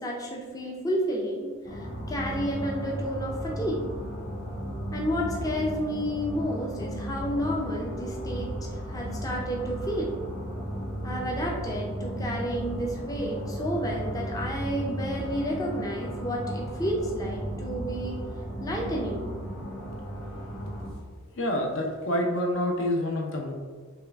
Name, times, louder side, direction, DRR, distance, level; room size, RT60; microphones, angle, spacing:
voice 1, 0.0-3.9 4.9-10.2 11.0-18.2 18.6-19.3, equal, 15° left, -2 dB, 0.5 m, -31 dB
sound 1, 1.6-20.9, equal, 45° left, 1.2 m, -35 dB
voice 2, 21.3-23.5, left 1 dB, 65° left, 1 dB, 0.7 m, -27 dB
5.6 x 2.3 x 3.4 m, 1.5 s
head